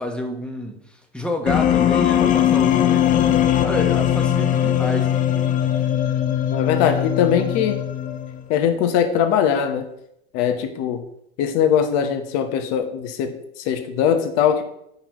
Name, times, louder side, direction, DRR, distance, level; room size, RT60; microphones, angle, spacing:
voice 1, 0.0-3.1 3.6-5.1, left 1 dB, 5° left, 2 dB, 1.1 m, -29 dB
sound 1, 1.5-8.5, left 10 dB, 25° left, 0.4 m, -20 dB
voice 2, 6.5-7.8 8.5-9.8 10.3-11.0 11.4-14.6, left 8 dB, 50° left, 6 dB, 1.1 m, -21 dB
8.8 x 5.5 x 3.1 m, 0.78 s
hypercardioid pair, 110°, 33 cm